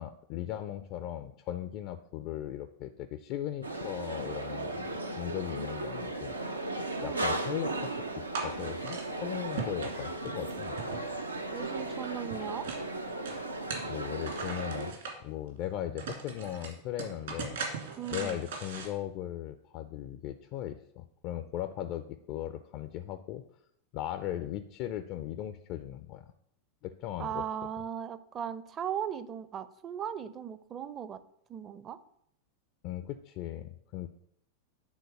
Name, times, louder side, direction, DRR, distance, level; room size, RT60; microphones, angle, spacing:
voice 1, 0.0-4.9 5.2-6.4 7.0-11.0 13.9-17.6 18.1-23.4 23.9-26.3 26.8-27.4 32.8-34.1, left 12 dB, 45° left, 10 dB, 0.5 m, -38 dB
sound 1, 3.6-14.9, right 2 dB, 85° right, 0.7 m, -36 dB
sound 2, 8.3-9.1 9.5-11.4 11.6-12.9 13.2-15.1 15.6-15.7 16.0-18.9, right 5 dB, 65° right, 2.2 m, -39 dB
voice 2, 11.5-12.7 18.0-18.4 27.2-31.2 31.5-32.0, right 9 dB, 30° right, 14 dB, 0.6 m, -37 dB
9.3 x 3.9 x 6.4 m, 0.72 s
figure-of-eight pair, 90°, 0 cm